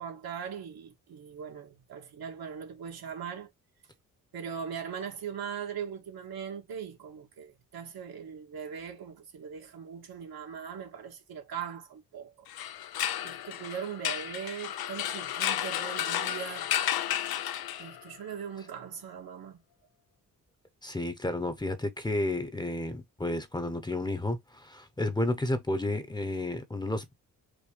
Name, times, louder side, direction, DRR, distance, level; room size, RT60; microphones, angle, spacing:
voice 1, 0.0-3.5 4.3-12.5 13.2-16.7 17.8-19.6, right 7 dB, 85° right, 2.2 m, -40 dB
sound 1, 12.5-18.2, left 11 dB, 80° left, 0.6 m, -32 dB
voice 2, 20.8-27.1, left 1 dB, 10° left, 0.9 m, -31 dB
4.8 x 3.0 x 3.3 m
cardioid pair, 105°, 36 cm